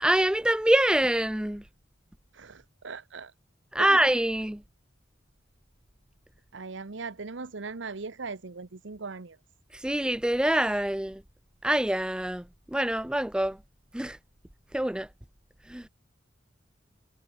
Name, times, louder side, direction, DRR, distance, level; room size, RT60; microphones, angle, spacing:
voice 1, 0.0-1.6 3.7-4.6 9.7-11.2 11.6-13.6 13.9-14.2 14.7-15.1 15.7-15.9, right 1 dB, 5° right, 0.4 m, -25 dB
voice 2, 2.3-3.3 3.8-4.0 6.5-9.4, right 4 dB, 80° right, 0.9 m, -39 dB
head